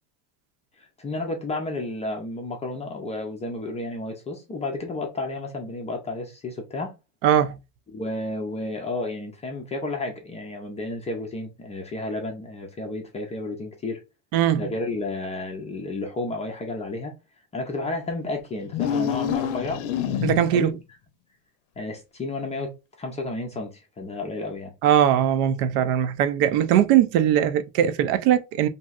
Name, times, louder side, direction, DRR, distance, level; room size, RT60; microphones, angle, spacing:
voice 1, 0.8-6.9 7.9-14.0 14.6-17.1 17.5-20.7 21.8-22.7 23.0-24.7, left 2 dB, 15° left, 0.4 m, -32 dB
voice 2, 7.2-7.6 14.3-14.6 20.2-20.8 24.8-28.7, right 10 dB, 70° right, 0.6 m, -20 dB
sound 1, 18.7-20.7, left 9 dB, 70° left, 0.6 m, -27 dB
3.0 x 2.7 x 2.3 m
cardioid pair, 145°, 44 cm